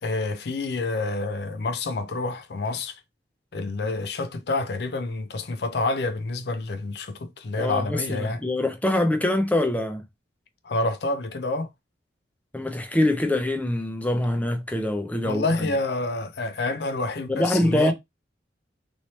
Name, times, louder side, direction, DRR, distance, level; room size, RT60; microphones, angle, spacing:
voice 1, 0.0-3.0 3.5-8.4 10.6-11.7 15.2-17.9, left 2 dB, 65° left, 0.5 m, -28 dB
voice 2, 7.6-10.0 12.5-15.4 17.3-17.9, left 1 dB, 10° left, 0.5 m, -24 dB
3.1 x 2.8 x 3.0 m
head